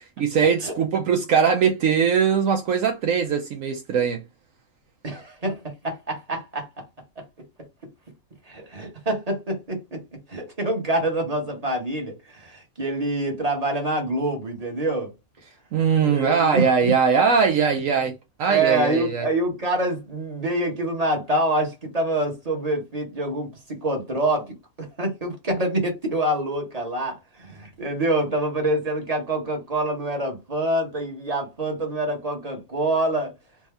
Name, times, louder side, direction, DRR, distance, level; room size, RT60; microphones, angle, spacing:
voice 1, 0.2-4.2 15.7-19.3, right 6 dB, 70° right, 1.0 m, -21 dB
voice 2, 5.0-6.8 8.5-10.0 10.3-15.1 16.0-16.9 18.5-33.3, right 1 dB, 30° right, 1.2 m, -26 dB
3.4 x 2.6 x 3.4 m
omnidirectional pair, 1.5 m